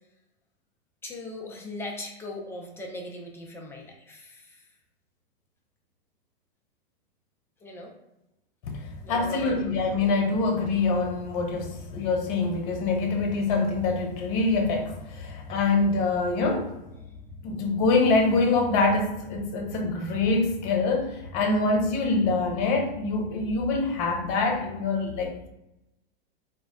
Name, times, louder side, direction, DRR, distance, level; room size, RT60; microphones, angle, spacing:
voice 1, 1.0-4.6 7.6-7.9 9.0-9.7, left 1 dB, 10° left, 0.3 m, -39 dB
voice 2, 8.6-16.8 17.4-25.5, left 3 dB, 45° left, 0.8 m, -25 dB
2.4 x 2.0 x 3.6 m
hypercardioid pair, 120°, 29 cm